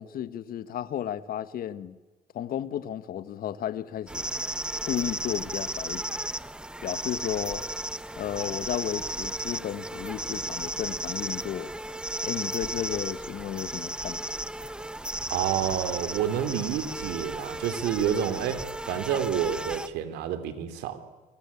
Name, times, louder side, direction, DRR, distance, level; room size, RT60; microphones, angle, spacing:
voice 1, 0.0-2.0 2.3-4.3 4.8-6.1 6.8-7.6 8.2-11.7 12.2-14.2, left 10 dB, 60° left, 1.4 m, -33 dB
sound 1, 4.1-19.9, right 1 dB, 5° right, 0.9 m, -34 dB
voice 2, 15.3-21.0, right 9 dB, 90° right, 3.1 m, -29 dB
27.5 x 23.5 x 8.5 m
cardioid pair, 110°, 17 cm